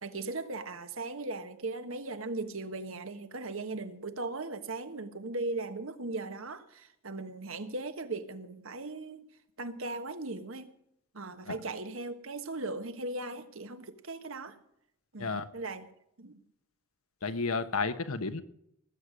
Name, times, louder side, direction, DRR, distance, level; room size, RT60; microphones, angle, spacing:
voice 1, 0.0-9.2 9.6-10.7 11.1-14.6 15.1-15.9 16.2-16.4, right 2 dB, 70° right, 9 dB, 1.3 m, -38 dB
voice 2, 17.2-18.4, left 4 dB, 85° left, 10 dB, 1.2 m, -32 dB
19.0 x 8.2 x 6.2 m, 0.76 s
head